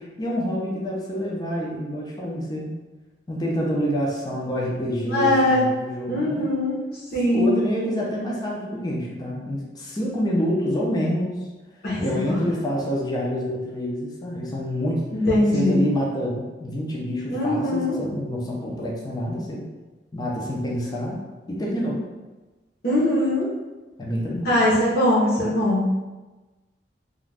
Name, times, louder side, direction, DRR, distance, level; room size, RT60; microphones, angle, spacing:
voice 1, 0.0-2.8 3.3-6.5 7.2-11.5 12.0-15.1 15.5-19.7 20.1-21.2 21.5-22.0 24.0-24.5, equal, 20° left, -3 dB, 0.5 m, -27 dB
voice 2, 5.0-5.6 6.1-6.8 7.1-7.5 11.8-12.4 15.1-15.9 17.3-18.0 22.8-23.5 24.4-26.0, left 1 dB, 55° left, -7 dB, 0.9 m, -21 dB
2.4 x 2.2 x 3.2 m, 1.2 s
head